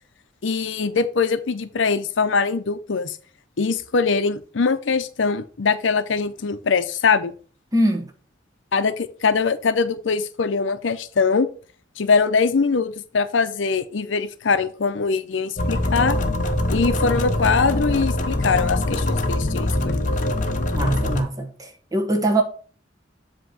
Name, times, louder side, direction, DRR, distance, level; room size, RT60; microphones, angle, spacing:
voice 1, 0.4-3.2 3.6-7.3 8.7-11.5 12.0-16.2 16.7-20.1, left 5 dB, 80° left, 0.6 m, -22 dB
voice 2, 7.7-8.1 20.7-22.4, right 1 dB, 20° right, 1.1 m, -22 dB
sound 1, 15.6-21.2, left 1 dB, 40° left, 0.7 m, -23 dB
7.7 x 3.0 x 6.2 m
head